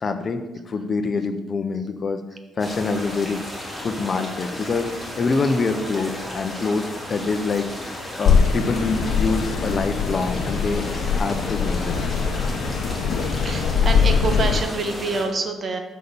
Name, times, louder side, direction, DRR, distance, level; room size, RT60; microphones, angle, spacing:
voice 1, 0.0-2.2 2.6-3.4 3.8-12.0, left 4 dB, 40° left, 8 dB, 0.7 m, -25 dB
sound 1, 2.6-15.2, left 1 dB, 10° left, 3.2 m, -34 dB
sound 2, 8.3-14.6, left 6 dB, 80° left, 0.8 m, -22 dB
voice 2, 13.4-15.8, right 3 dB, 45° right, 5 dB, 1.2 m, -27 dB
6.3 x 5.5 x 6.9 m, 1.1 s
cardioid pair, 90°, 0 cm